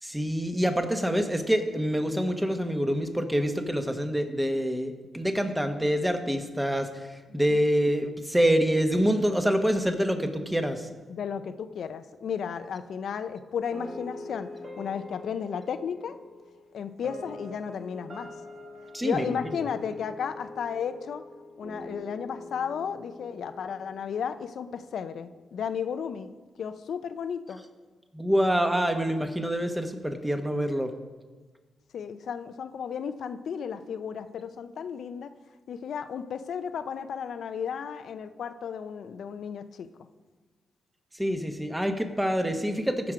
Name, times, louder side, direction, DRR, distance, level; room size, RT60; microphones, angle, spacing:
voice 1, 0.0-10.9 18.9-19.3 28.1-30.9 41.1-43.1, equal, 10° right, 6 dB, 1.3 m, -26 dB
voice 2, 11.1-14.5 14.8-16.2 16.7-18.3 19.0-21.2 21.6-26.3 26.6-27.6 31.9-35.3 35.7-39.9, left 7 dB, 75° left, 11 dB, 0.6 m, -34 dB
sound 1, 13.7-24.8, left 2 dB, 50° right, 2.3 m, -44 dB
14.5 x 6.1 x 5.0 m, 1.3 s
cardioid pair, 60°, 0 cm